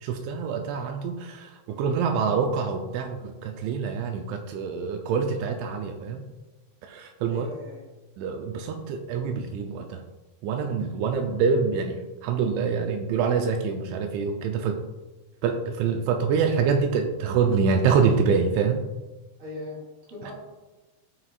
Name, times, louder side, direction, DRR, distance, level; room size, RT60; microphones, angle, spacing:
voice 1, 0.0-6.2 6.9-7.5 8.2-10.0 10.4-14.8 15.4-18.8 20.3-20.4, right 5 dB, 80° right, 4 dB, 2.9 m, -25 dB
voice 2, 7.3-7.8 19.4-19.8 20.1-20.3, left 1 dB, 55° right, -6 dB, 5.0 m, -38 dB
17.5 x 5.9 x 2.4 m, 1.1 s
omnidirectional pair, 5.6 m